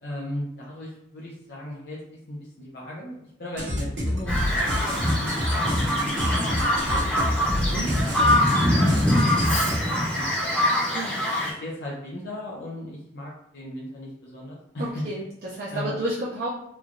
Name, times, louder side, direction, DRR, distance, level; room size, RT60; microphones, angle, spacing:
voice 1, 0.0-7.0 7.3-8.3 8.6-10.7 11.4-15.0 15.7-16.0, left 1 dB, 55° left, -6 dB, 0.6 m, -37 dB
sound 1, 3.6-9.8, left 1 dB, 65° right, 1.1 m, -28 dB
Bird vocalization bird call bird song, 4.3-11.5, left 1 dB, 5° left, 0.7 m, -23 dB
voice 2, 14.8-16.5, right 1 dB, 50° right, -6 dB, 0.5 m, -31 dB
3.1 x 2.2 x 2.4 m, 0.79 s
head